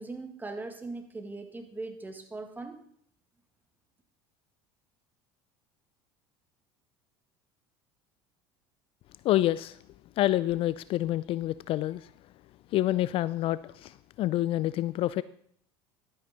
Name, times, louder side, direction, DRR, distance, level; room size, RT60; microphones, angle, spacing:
voice 1, 0.0-2.8, right 3 dB, 15° right, 6 dB, 1.7 m, -40 dB
voice 2, 9.2-9.8 10.2-12.1 12.7-15.2, left 14 dB, 50° left, 17 dB, 0.4 m, -27 dB
12.0 x 8.8 x 4.1 m, 0.65 s
hypercardioid pair, 80°, 12 cm